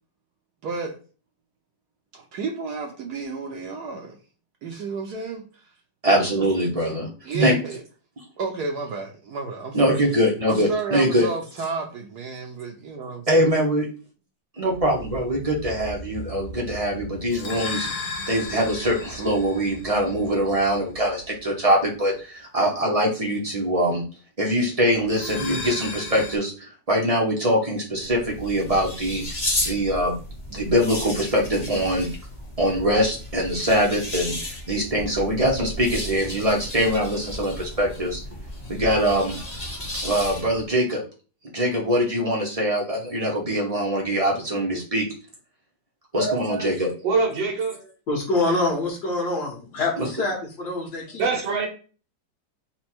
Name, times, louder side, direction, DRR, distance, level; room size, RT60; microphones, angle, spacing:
voice 1, 0.6-1.0 2.1-4.2 4.6-5.6 6.2-6.5 6.9-7.0 7.2-7.8 8.4-10.0 10.5-13.4, right 4 dB, 70° right, 1.1 m, -31 dB
voice 2, 6.0-7.1 7.3-7.5 9.7-11.3 13.3-13.9 14.6-17.9 18.3-24.0 24.4-29.2 29.7-30.2 30.5-32.1 32.6-38.2 38.7-39.4 39.9-41.0 41.6-45.1 46.1-46.9 50.0-50.1, equal, 40° right, 0.5 m, -23 dB
sound 1, 14.7-21.3 25.0-26.4, left 2 dB, 90° left, 1.7 m, -35 dB
sound 2, 28.0-40.7, left 1 dB, 25° left, 0.9 m, -33 dB
voice 3, 46.1-47.9 51.2-51.7, right 4 dB, 85° right, 1.8 m, -25 dB
voice 4, 48.1-51.2, left 2 dB, 65° left, 1.8 m, -25 dB
4.3 x 2.2 x 4.3 m
omnidirectional pair, 2.0 m